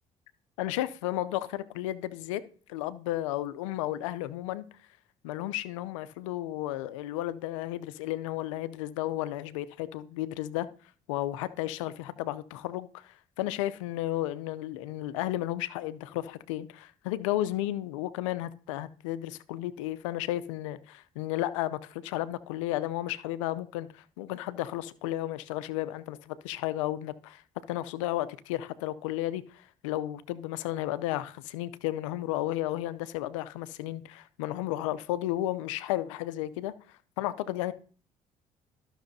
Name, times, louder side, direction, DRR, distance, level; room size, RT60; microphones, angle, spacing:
voice 1, 0.6-2.4 2.7-4.6 5.2-10.7 11.1-27.4 27.7-36.7 37.2-37.7, left 14 dB, 90° left, 0.5 m, -33 dB
13.5 x 6.2 x 2.7 m
hypercardioid pair, 60°, 16 cm